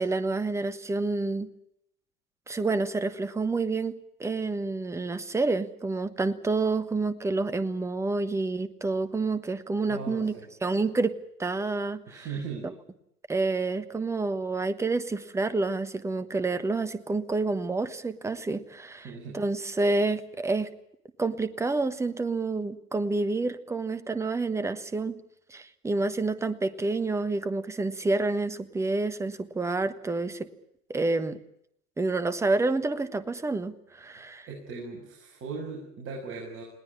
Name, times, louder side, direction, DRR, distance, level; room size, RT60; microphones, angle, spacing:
voice 1, 0.0-1.5 2.5-10.3 10.6-12.2 13.3-19.1 19.3-20.7 21.2-25.2 25.5-30.5 30.9-31.4 32.0-34.5, right 3 dB, 5° right, 12 dB, 1.2 m, -28 dB
voice 2, 9.9-10.5 12.1-12.7 19.0-19.4 34.0-34.2 34.5-36.6, right 4 dB, 25° right, -3 dB, 6.9 m, -38 dB
21.0 x 18.5 x 9.8 m, 0.74 s
hypercardioid pair, 120°, 45 cm